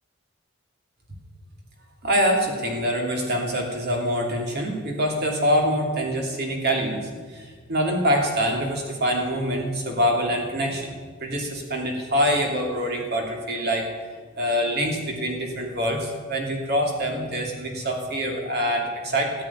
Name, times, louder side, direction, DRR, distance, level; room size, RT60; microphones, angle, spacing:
voice 1, 2.0-10.9 11.2-13.9 14.4-19.3, equal, 50° right, 1 dB, 2.9 m, -25 dB
14.0 x 8.8 x 9.6 m, 1.5 s
head